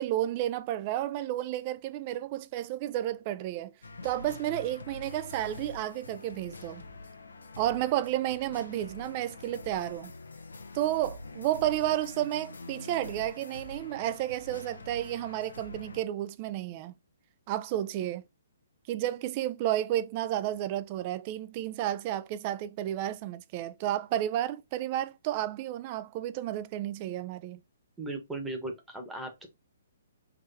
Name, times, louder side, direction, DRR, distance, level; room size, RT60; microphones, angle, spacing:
voice 1, 0.0-3.7 4.0-6.8 7.6-10.1 10.7-16.9 17.5-18.2 18.9-27.6, right 13 dB, 35° right, 0.4 m, -31 dB
sound 1, 3.8-16.0, left 3 dB, 80° left, 0.7 m, -46 dB
voice 2, 28.0-29.5, right 2 dB, 10° right, 1.0 m, -37 dB
3.9 x 3.1 x 2.7 m
figure-of-eight pair, 130°, 0 cm